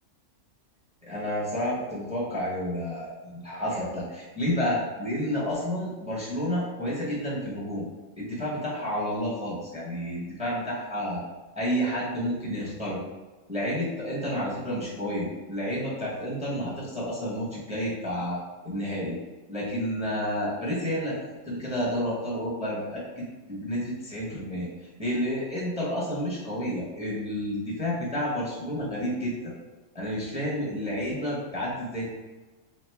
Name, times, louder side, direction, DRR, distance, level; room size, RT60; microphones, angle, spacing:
voice 1, 1.0-7.8 8.2-11.2 11.5-13.0 13.5-18.4 18.6-19.2 19.5-23.2 23.5-24.7 25.0-29.5 29.9-32.1, equal, 5° right, -6 dB, 0.9 m, -30 dB
3.7 x 3.0 x 3.4 m, 1.3 s
omnidirectional pair, 1.4 m